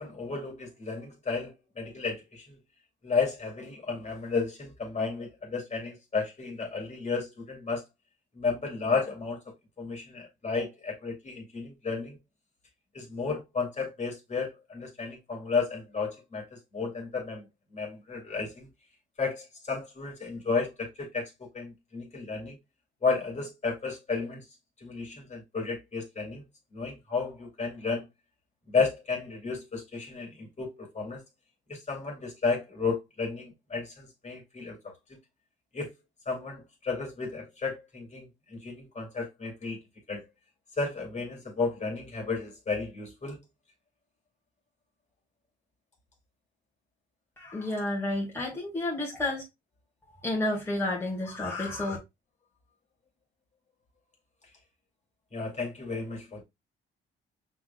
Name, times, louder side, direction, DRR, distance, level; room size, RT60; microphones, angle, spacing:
voice 1, 0.0-2.6 3.0-7.8 8.3-9.4 9.8-12.2 12.9-17.4 17.7-18.7 19.2-22.6 23.0-24.4 24.8-26.4 26.7-28.0 28.7-31.2 31.7-34.9 35.7-35.9 36.3-39.8 40.1-40.2 40.8-43.4 55.3-56.4, left 4 dB, 35° left, 2.4 m, -33 dB
voice 2, 47.4-49.4 50.1-52.0, left 2 dB, 10° left, 1.9 m, -31 dB
5.9 x 3.6 x 2.2 m
cardioid pair, 90°, 20 cm